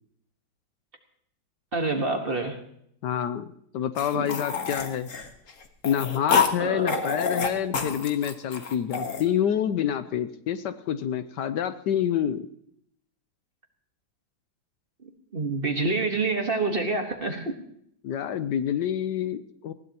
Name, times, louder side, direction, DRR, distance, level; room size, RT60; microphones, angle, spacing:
voice 1, 1.7-2.6 4.1-4.3 6.6-7.0 15.0-17.6, right 3 dB, 30° right, 5 dB, 1.4 m, -27 dB
voice 2, 3.0-5.1 5.8-12.5 18.0-19.7, left 9 dB, 70° left, 11 dB, 1.2 m, -27 dB
sound 1, 4.0-6.5 6.9-9.3, left 6 dB, 45° left, 1.6 m, -27 dB
20.0 x 16.0 x 2.9 m, 0.69 s
omnidirectional pair, 2.1 m